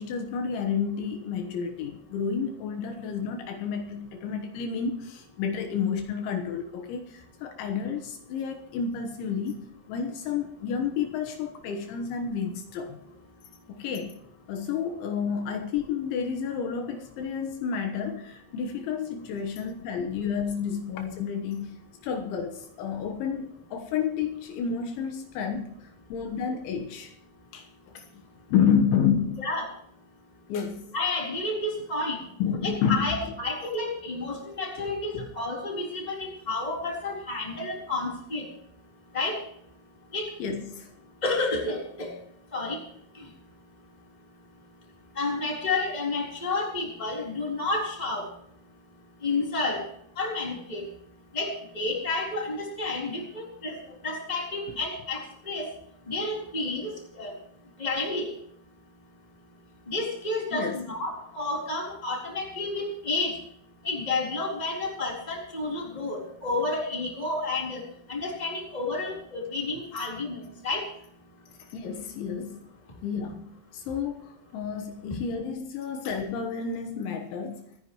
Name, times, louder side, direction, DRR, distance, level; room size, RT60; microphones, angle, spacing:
voice 1, 0.0-13.0 13.7-14.2 14.5-21.8 22.0-27.1 27.5-27.7 27.9-28.0 28.5-29.5 30.5-30.8 32.4-33.2 35.1-35.3 40.4-40.9 60.5-60.8 71.7-72.6 73.0-74.2 74.5-77.7, left 7 dB, 75° left, 3.4 m, -30 dB
voice 2, 30.9-32.2 32.6-38.5 39.1-39.4 40.1-40.3 41.2-42.1 42.5-42.8 43.2-43.3 45.1-48.3 49.2-49.8 50.2-50.8 51.3-55.7 56.1-57.3 57.8-58.3 59.9-63.3 63.8-67.8 68.1-70.8, left 2 dB, 10° left, 3.1 m, -30 dB
27.5 x 10.0 x 3.1 m
omnidirectional pair, 5.7 m